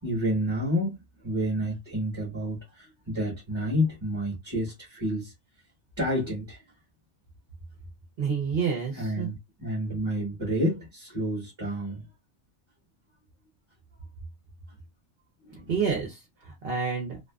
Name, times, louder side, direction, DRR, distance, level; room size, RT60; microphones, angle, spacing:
voice 1, 0.0-5.3 6.0-6.6 8.9-12.0 15.4-15.7, equal, 25° right, 1.0 m, -29 dB
voice 2, 8.2-9.3 15.7-17.2, right 6 dB, 60° right, 0.8 m, -29 dB
2.5 x 2.4 x 2.2 m
omnidirectional pair, 1.2 m